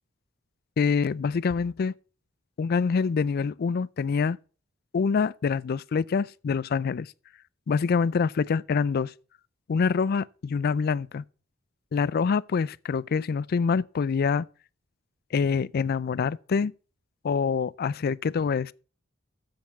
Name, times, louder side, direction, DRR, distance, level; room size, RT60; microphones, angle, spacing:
voice 1, 0.8-1.9 2.6-4.4 4.9-7.1 7.7-9.1 9.7-11.2 11.9-14.5 15.3-16.7 17.2-18.7, left 5 dB, 50° left, 0.4 m, -25 dB
7.8 x 7.0 x 7.1 m
head